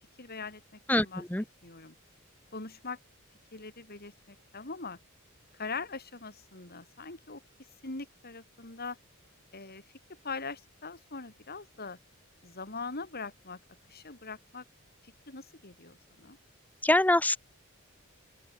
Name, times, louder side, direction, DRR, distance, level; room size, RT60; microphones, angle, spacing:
voice 1, 0.2-0.6 0.9-1.2 1.6-1.9 2.5-3.0 3.5-5.0 5.5-7.4 7.8-9.0 9.5-9.8 10.1-12.0 12.4-13.6 13.9-14.6 15.0-16.4, left 4 dB, 45° left, 5.2 m, -41 dB
voice 2, 0.9-1.4 16.8-17.4, left 1 dB, 10° left, 1.2 m, -24 dB
open air
head